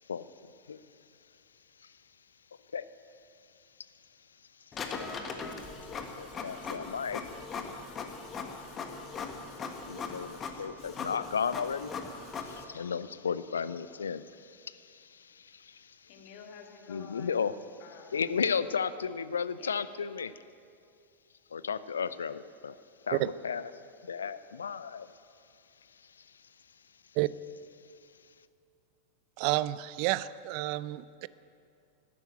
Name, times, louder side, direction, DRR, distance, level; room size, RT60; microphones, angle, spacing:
Printer, 4.7-12.6, left 4 dB, 25° left, 1.5 m, -40 dB
voice 1, 6.2-7.2 9.9-11.9 12.4-15.9 16.9-17.5 18.1-20.3 21.5-22.8 23.1-23.6 24.0-25.1, left 6 dB, 70° left, 15 dB, 0.5 m, -34 dB
voice 2, 16.1-17.5 17.8-18.2 19.6-19.8, left 6 dB, 45° left, 2 dB, 2.3 m, -50 dB
voice 3, 29.4-31.3, right 18 dB, 45° right, 18 dB, 0.4 m, -30 dB
12.5 x 11.5 x 9.0 m, 2.4 s
figure-of-eight pair, 90°, 0 cm